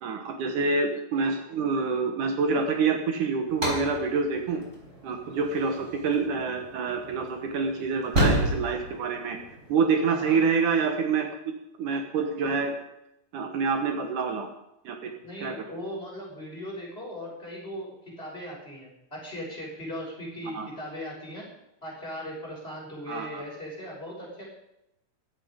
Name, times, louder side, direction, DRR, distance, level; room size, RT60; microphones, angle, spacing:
voice 1, 0.0-4.6 5.0-9.4 9.7-11.3 11.8-12.7 13.3-14.5 14.8-15.1 15.4-15.5 20.5-20.7 23.1-23.4, right 4 dB, 70° right, 5 dB, 2.7 m, -27 dB
sound 1, 3.5-9.9, right 1 dB, 20° right, 4.7 m, -31 dB
voice 2, 10.1-10.4 15.2-21.4 21.8-24.4, equal, 15° left, -4 dB, 6.1 m, -38 dB
16.0 x 12.5 x 5.2 m, 0.84 s
omnidirectional pair, 3.8 m